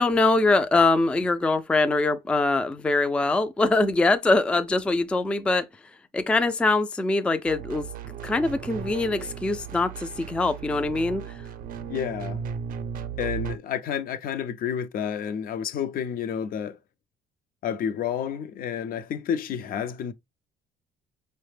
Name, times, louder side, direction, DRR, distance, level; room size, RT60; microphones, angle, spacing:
voice 1, 0.0-5.7 6.1-7.9 8.2-11.2, left 3 dB, 5° left, 0.3 m, -23 dB
sound 1, 7.5-13.6, right 8 dB, 55° right, 0.5 m, -36 dB
voice 2, 11.9-12.5 13.2-16.8 17.6-20.1, left 8 dB, 60° left, 0.5 m, -30 dB
4.8 x 2.1 x 3.2 m
cardioid pair, 110°, 17 cm